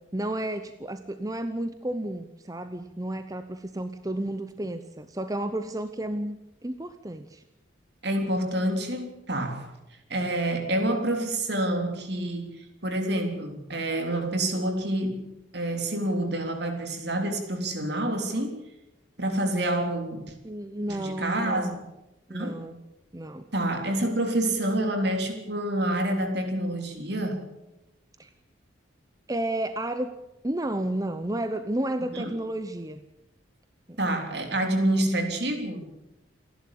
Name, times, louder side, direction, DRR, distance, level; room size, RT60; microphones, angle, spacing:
voice 1, 0.1-7.4 20.4-21.8 22.3-22.8 23.1-23.4 28.2-28.3 29.3-30.1 30.4-33.0 33.9-34.0, right 1 dB, 20° right, 0.8 m, -32 dB
voice 2, 8.0-9.7 10.1-18.6 19.2-20.3 20.9-21.8 22.3-22.6 23.5-27.4 32.1-32.3 34.0-35.9, right 1 dB, 55° right, 3.5 m, -28 dB
28.5 x 11.5 x 8.6 m
head